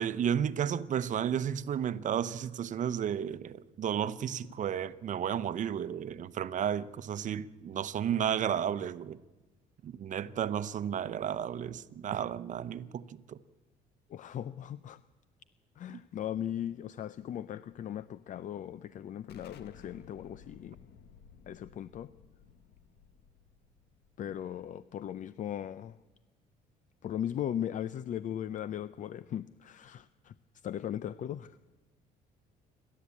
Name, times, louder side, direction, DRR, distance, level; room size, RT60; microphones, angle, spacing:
voice 1, 0.0-9.2 9.8-13.4, right 9 dB, 50° right, 0.9 m, -33 dB
voice 2, 14.1-15.0 15.8-20.8 21.5-22.1 24.2-26.0 27.0-30.3 30.6-31.6, left 10 dB, 50° left, 0.6 m, -38 dB
Explosion, 19.3-24.7, left 6 dB, 75° left, 1.7 m, -56 dB
28.0 x 12.5 x 8.5 m
cardioid pair, 110°, 17 cm